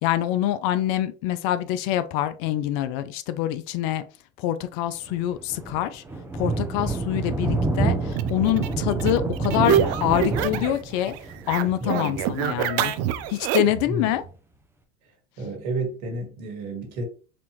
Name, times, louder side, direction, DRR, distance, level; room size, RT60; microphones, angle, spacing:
voice 1, 0.0-4.0 4.4-6.0 6.3-11.1 11.5-12.9 13.3-14.2, left 12 dB, 50° left, 0.5 m, -25 dB
Thunder, 5.1-14.2, right 3 dB, 5° right, 0.7 m, -28 dB
sound 1, 8.1-10.8 11.1-13.9, right 10 dB, 45° right, 0.5 m, -27 dB
voice 2, 11.8-12.2 13.9-14.1 15.4-17.0, right 2 dB, 65° right, 1.8 m, -30 dB
4.2 x 2.6 x 2.9 m
hypercardioid pair, 95°, 35 cm